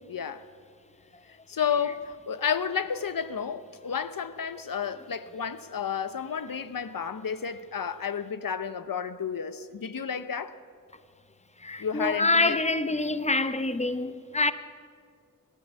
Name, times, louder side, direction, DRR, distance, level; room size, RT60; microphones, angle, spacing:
voice 1, 0.1-0.4 1.3-10.6 11.8-12.6, left 7 dB, 75° left, 0.8 m, -31 dB
voice 2, 11.6-14.5, left 2 dB, 20° left, 0.9 m, -26 dB
26.0 x 13.0 x 8.1 m
wide cardioid pair, 70°, 34 cm